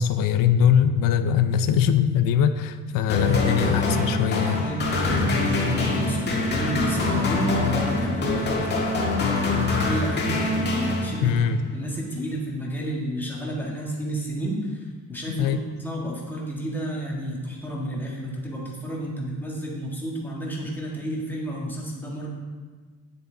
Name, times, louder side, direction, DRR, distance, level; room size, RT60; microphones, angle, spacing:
voice 1, 0.0-4.7 11.2-11.6 15.3-15.6, left 8 dB, 85° left, 9 dB, 0.6 m, -21 dB
sound 1, 3.1-11.5, left 3 dB, 30° left, 1.8 m, -24 dB
voice 2, 4.6-8.6 9.2-22.3, equal, 5° left, -4 dB, 1.6 m, -31 dB
9.5 x 8.0 x 3.9 m, 1.5 s
cardioid pair, 165°, 32 cm